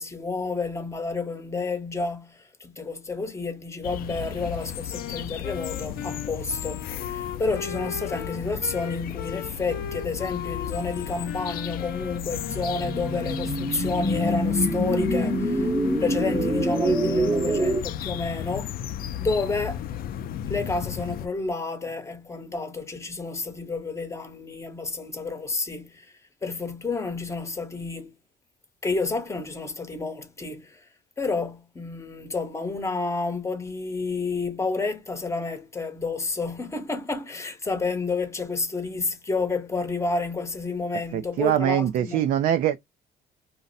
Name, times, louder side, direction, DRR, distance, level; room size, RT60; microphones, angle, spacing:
voice 1, 0.0-15.7 16.0-18.7 19.2-19.8 20.5-26.1 26.4-28.1 28.8-30.8 31.2-42.3, left 3 dB, 15° left, 0.9 m, -30 dB
sound 1, 3.8-21.3, left 9 dB, 60° left, 0.4 m, -35 dB
Wind instrument woodwind instrument, 4.9-13.6, left 9 dB, 85° left, 0.8 m, -38 dB
sound 2, 12.3-17.8, right 1 dB, 15° right, 0.8 m, -25 dB
voice 2, 41.1-42.8, right 11 dB, 60° right, 0.4 m, -23 dB
2.6 x 2.0 x 3.9 m
cardioid pair, 110°, 17 cm